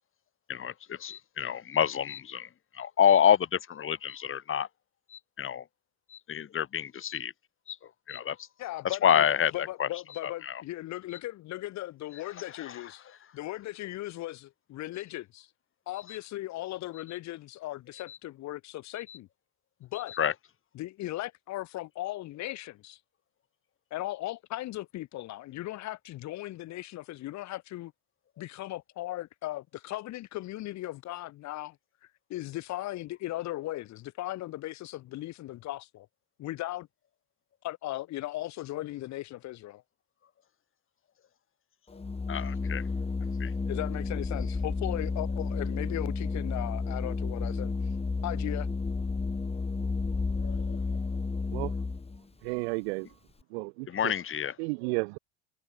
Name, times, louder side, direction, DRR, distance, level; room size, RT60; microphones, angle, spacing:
voice 1, 0.5-2.5 2.7-4.7 5.1-5.6 6.1-7.3 7.7-7.8 8.1-8.4 9.0-9.9 10.2-10.6 12.7-12.8 16.1-16.2 18.1-18.2 19.1-19.2 20.1-20.3 42.3-42.8 43.4-43.5 50.4-50.8 53.9-54.6, left 9 dB, 40° left, 3.4 m, -28 dB
voice 2, 8.6-9.2 9.5-13.1 13.3-15.5 15.9-19.3 19.8-20.1 20.7-23.0 23.9-27.9 28.4-31.8 32.3-36.1 36.4-36.9 37.6-39.8 43.7-47.7 48.2-48.7, left 16 dB, 55° left, 3.0 m, -37 dB
Organ, 41.9-52.2, left 3 dB, 20° left, 4.8 m, -31 dB
voice 3, 52.4-53.1 53.5-53.9 54.6-55.2, right 28 dB, 75° right, 0.8 m, -32 dB
hypercardioid pair, 80°, 33 cm